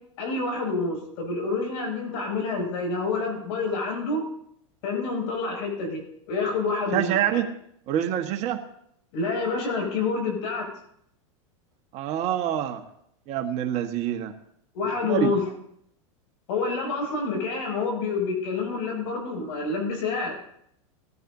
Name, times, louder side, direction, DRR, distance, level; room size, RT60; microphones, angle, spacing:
voice 1, 0.2-4.2 4.8-6.0 6.3-7.4 9.1-10.7 14.7-15.4 16.5-20.5, left 4 dB, 65° left, 0 dB, 7.1 m, -28 dB
voice 2, 6.9-7.5 7.9-8.6 11.9-12.8 13.3-14.3 15.0-15.4, right 10 dB, 40° right, 5 dB, 1.4 m, -26 dB
19.5 x 14.0 x 2.7 m, 0.72 s
hypercardioid pair, 120°, 17 cm